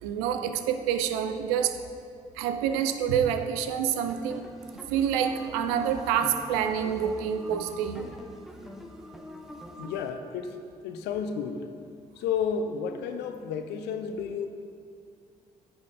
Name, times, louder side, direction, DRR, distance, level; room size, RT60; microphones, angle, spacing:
voice 1, 0.0-1.8 2.4-4.5 4.9-8.1, right 8 dB, 75° right, 9 dB, 0.4 m, -27 dB
sound 1, 4.1-10.1, equal, ahead, 0.7 m, -43 dB
voice 2, 9.8-11.7 12.2-14.5, left 6 dB, 65° left, 7 dB, 0.5 m, -32 dB
9.9 x 3.5 x 4.0 m, 2.4 s
figure-of-eight pair, 40°, 19 cm